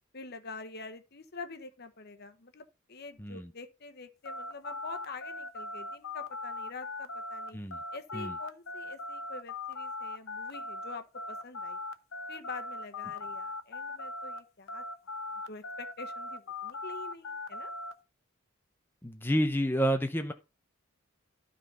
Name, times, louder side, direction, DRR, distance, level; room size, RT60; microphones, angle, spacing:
voice 1, 0.1-7.6 7.9-11.8 12.3-15.2 15.5-17.7, left 3 dB, 50° left, 1.1 m, -46 dB
voice 2, 3.2-3.5 7.5-7.8 8.1-8.4 19.0-20.3, equal, 10° left, 0.7 m, -29 dB
sound 1, 4.2-14.4 14.7-17.9, left 2 dB, 75° left, 1.0 m, -39 dB
12.5 x 4.1 x 5.4 m
head